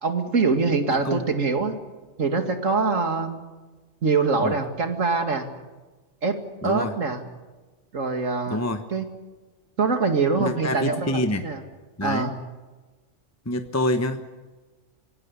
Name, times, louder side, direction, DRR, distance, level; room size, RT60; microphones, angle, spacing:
voice 1, 0.0-1.8 2.2-3.4 4.0-5.5 6.2-6.4 6.6-7.2 7.9-8.6 8.9-9.0 9.8-11.6 12.0-12.4, right 4 dB, 80° right, 6 dB, 2.6 m, -24 dB
voice 2, 6.6-6.9 8.5-8.8 10.4-11.5 12.0-12.3 13.5-14.2, left 1 dB, 15° left, 8 dB, 1.1 m, -26 dB
25.0 x 19.0 x 8.4 m, 1.3 s
omnidirectional pair, 1.3 m